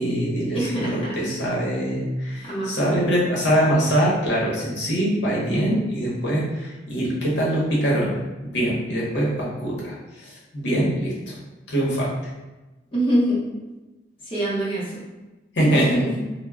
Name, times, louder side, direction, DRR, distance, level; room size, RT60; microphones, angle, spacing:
voice 1, 0.0-8.2 8.5-11.3 11.7-12.1 15.5-15.9, right 1 dB, 75° left, -5 dB, 0.8 m, -23 dB
voice 2, 0.5-1.2 2.4-3.0 12.9-13.4 14.2-15.0 15.6-16.1, right 1 dB, 30° left, -7 dB, 0.7 m, -24 dB
2.2 x 2.0 x 3.4 m, 1.1 s
head